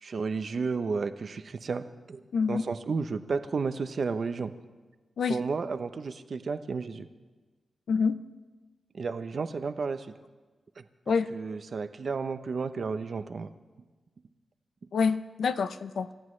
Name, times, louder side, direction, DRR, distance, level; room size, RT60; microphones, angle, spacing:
voice 1, 0.0-2.2 2.5-4.5 5.3-7.1 8.9-10.1 10.8-13.5, right 4 dB, 55° right, 9 dB, 0.8 m, -32 dB
voice 2, 2.3-2.6 5.2-5.4 7.9-8.2 11.1-11.3 14.9-16.1, left 5 dB, 85° left, 11 dB, 0.6 m, -27 dB
28.5 x 14.5 x 3.3 m, 1.3 s
wide cardioid pair, 100°, 0 cm